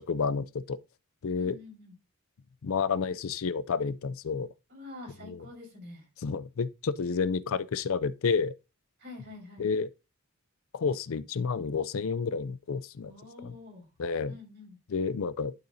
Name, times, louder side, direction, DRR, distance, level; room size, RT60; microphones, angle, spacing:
voice 1, 0.1-0.8 1.2-1.6 2.6-4.5 5.3-5.4 6.2-8.5 9.6-9.9 10.7-13.1 13.4-13.5 14.0-14.3 14.9-15.5, left 5 dB, 65° left, 0.4 m, -30 dB
voice 2, 1.3-1.9 4.7-6.1 9.0-9.7 13.0-13.9 14.3-14.8, left 2 dB, 50° right, 5.4 m, -47 dB
11.5 x 6.5 x 2.7 m
head